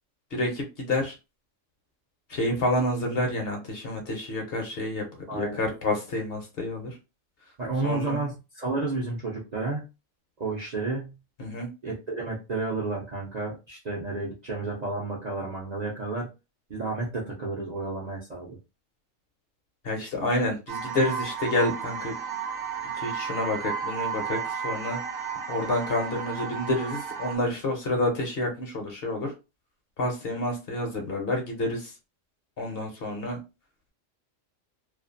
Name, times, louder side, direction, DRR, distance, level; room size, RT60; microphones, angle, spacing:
voice 1, 0.3-1.1 2.3-5.0 5.3-6.9 7.8-8.2 11.4-11.7 19.8-22.1 23.0-25.0 25.5-29.3 30.0-31.9 32.6-33.4, left 1 dB, 55° left, 2 dB, 0.8 m, -28 dB
voice 2, 5.3-5.7 7.6-9.9 10.4-11.1 11.8-16.3 16.7-18.6, right 3 dB, 45° right, -4 dB, 0.6 m, -31 dB
sound 1, 20.7-27.4, right 7 dB, 65° right, 0.9 m, -33 dB
2.5 x 2.3 x 2.5 m, 0.28 s
omnidirectional pair, 1.3 m